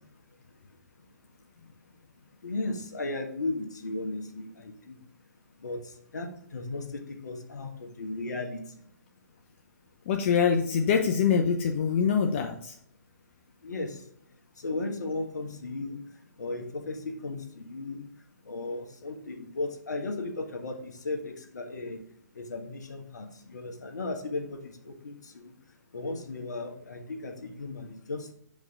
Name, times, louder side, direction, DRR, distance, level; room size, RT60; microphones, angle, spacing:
voice 1, 2.4-4.7 5.6-5.8 6.1-8.6 13.6-13.9 14.6-16.0 16.4-18.1 18.5-22.0 22.4-23.3 23.5-25.2 25.9-28.3, left 2 dB, 75° left, 4 dB, 1.4 m, -35 dB
voice 2, 10.1-12.8, left 6 dB, 45° left, 4 dB, 0.7 m, -24 dB
6.4 x 5.3 x 3.6 m, 0.68 s
figure-of-eight pair, 130°, 9 cm